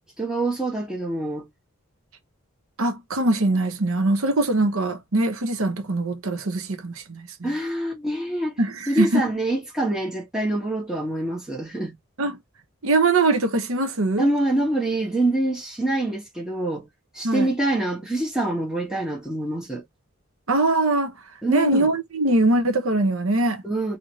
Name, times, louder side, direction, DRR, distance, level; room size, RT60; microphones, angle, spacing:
voice 1, 0.2-1.5 7.4-8.6 8.9-11.9 14.2-16.9 17.1-19.8 21.4-21.9 23.6-24.0, right 1 dB, 5° right, 1.4 m, -25 dB
voice 2, 2.8-7.5 8.6-9.3 12.2-12.4 12.8-14.3 17.2-17.5 20.5-21.1 21.5-23.6, right 2 dB, 75° right, 0.9 m, -22 dB
3.9 x 2.9 x 3.0 m
head